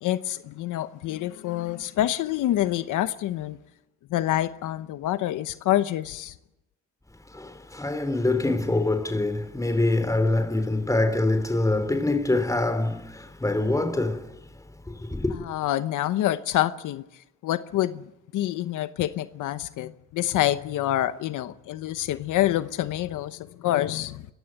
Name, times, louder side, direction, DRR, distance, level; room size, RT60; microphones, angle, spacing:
voice 1, 0.0-3.6 4.1-6.3 15.4-17.0 17.4-18.0 18.3-24.3, left 13 dB, 85° left, 1.0 m, -27 dB
voice 2, 7.3-15.3, left 2 dB, 10° left, 3.7 m, -25 dB
26.0 x 15.5 x 9.0 m
cardioid pair, 90°, 30 cm